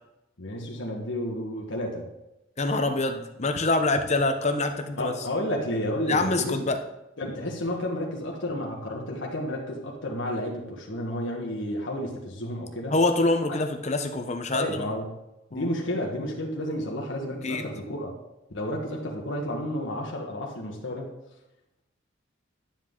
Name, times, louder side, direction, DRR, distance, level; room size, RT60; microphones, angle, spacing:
voice 1, 0.4-2.1 5.0-6.6 7.2-12.9 14.5-15.1 15.5-18.1 18.5-21.1, left 1 dB, 75° left, -2 dB, 1.5 m, -31 dB
voice 2, 2.6-5.1 6.1-6.8 12.9-14.8 15.5-15.7 17.4-17.6, left 2 dB, 35° left, 6 dB, 0.9 m, -25 dB
11.5 x 7.6 x 3.8 m, 0.94 s
head